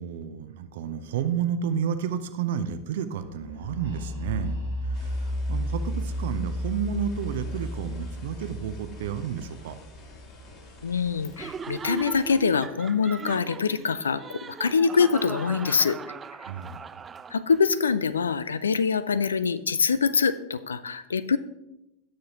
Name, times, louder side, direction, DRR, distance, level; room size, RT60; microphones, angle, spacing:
voice 1, 0.0-4.6 4.8-9.8 16.4-16.8, right 8 dB, 55° right, 11 dB, 0.7 m, -31 dB
sound 1, 3.2-10.9, equal, 90° left, 3.6 m, -33 dB
sound 2, 4.9-12.5, left 2 dB, 40° left, 3.0 m, -49 dB
voice 2, 10.8-16.0 17.3-21.4, left 5 dB, 70° left, 15 dB, 0.4 m, -24 dB
Laughter, 11.4-17.7, right 6 dB, 20° right, 0.3 m, -39 dB
16.5 x 6.5 x 2.9 m, 0.92 s
figure-of-eight pair, 90°, 0 cm